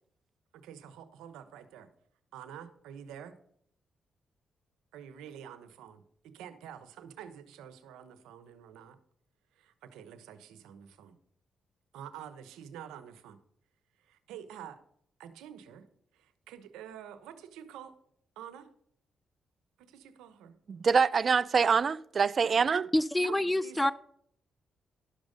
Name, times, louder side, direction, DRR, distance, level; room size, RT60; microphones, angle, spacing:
voice 1, 0.5-1.9 2.3-3.3 4.9-9.0 9.6-11.2 11.9-13.4 14.0-14.8 15.2-15.9 16.1-17.9 18.4-18.7 19.8-20.5 22.4-22.6 23.2-23.9, right 9 dB, 90° right, 0.9 m, -48 dB
voice 2, 20.7-22.9, right 5 dB, 50° right, 0.5 m, -25 dB
voice 3, 22.9-23.9, left 1 dB, 15° left, 0.4 m, -27 dB
11.5 x 6.3 x 5.1 m
supercardioid pair, 55°, 0 cm